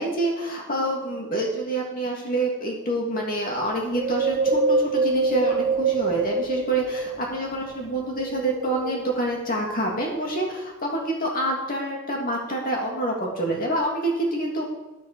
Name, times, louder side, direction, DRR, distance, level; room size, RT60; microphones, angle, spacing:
voice 1, 0.0-14.7, right 1 dB, 40° left, -1 dB, 2.8 m, -27 dB
Wind, 3.9-7.5 8.0-9.3 9.8-9.9, right 3 dB, 30° right, 0.8 m, -25 dB
9.6 x 7.8 x 7.0 m, 1.0 s
head